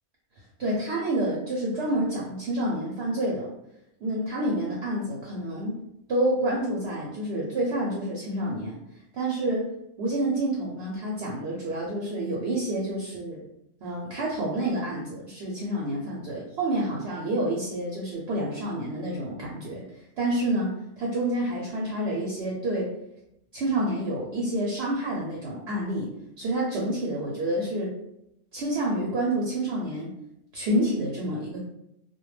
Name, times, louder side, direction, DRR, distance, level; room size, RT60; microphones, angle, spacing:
voice 1, 0.6-3.5 4.0-5.8 6.1-8.8 9.1-13.4 13.8-20.7 21.0-22.9 23.5-27.9 28.5-30.1 30.5-31.6, right 1 dB, 65° right, -3 dB, 0.7 m, -28 dB
2.2 x 2.1 x 3.1 m, 0.81 s
omnidirectional pair, 1.4 m